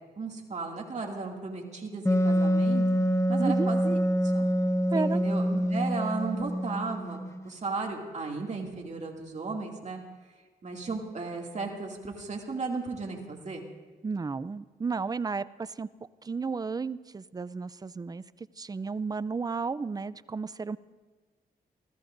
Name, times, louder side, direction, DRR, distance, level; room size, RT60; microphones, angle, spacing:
voice 1, 0.2-3.0 3.3-4.0 4.2-4.5 4.9-7.2 7.4-10.0 10.6-13.6, right 4 dB, 45° right, 0 dB, 2.4 m, -35 dB
Wind instrument woodwind instrument, 2.0-7.4, equal, 15° left, 1.1 m, -26 dB
voice 2, 3.4-3.7 4.9-5.2 14.0-15.9 16.2-20.8, right 4 dB, 25° right, 16 dB, 0.4 m, -33 dB
28.0 x 14.0 x 2.6 m, 1.3 s
cardioid pair, 80°, 17 cm